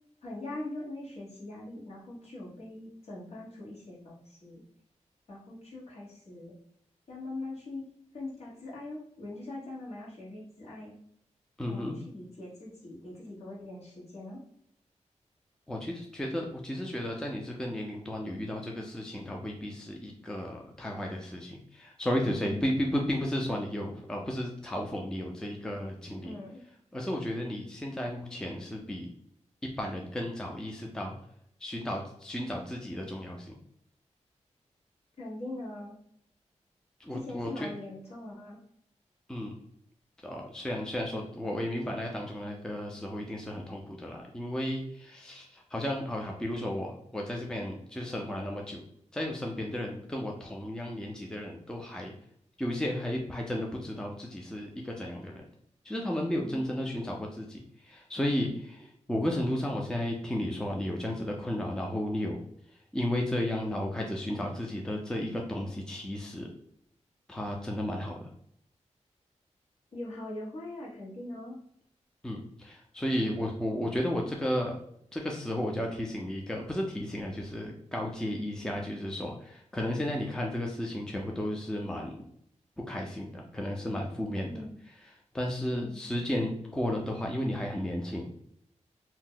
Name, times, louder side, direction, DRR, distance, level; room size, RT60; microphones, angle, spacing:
voice 1, 0.2-4.6 5.3-6.5 7.1-7.8 8.1-10.9 11.7-14.4 22.3-22.7 26.2-26.6 35.2-36.0 37.1-38.6 69.9-71.6 84.4-84.8 85.7-86.0, left 2 dB, 60° left, -6 dB, 1.3 m, -42 dB
voice 2, 11.6-12.0 15.7-26.3 26.9-29.1 29.8-31.2 31.6-33.5 37.0-37.7 39.3-39.6 40.2-48.8 49.1-52.1 52.6-55.4 55.8-62.4 62.9-66.5 67.3-68.2 72.2-74.7 75.1-82.2 82.9-84.5 85.3-88.3, left 1 dB, 5° left, 0 dB, 0.4 m, -33 dB
2.7 x 2.1 x 3.8 m, 0.70 s
wide cardioid pair, 100°, 12 cm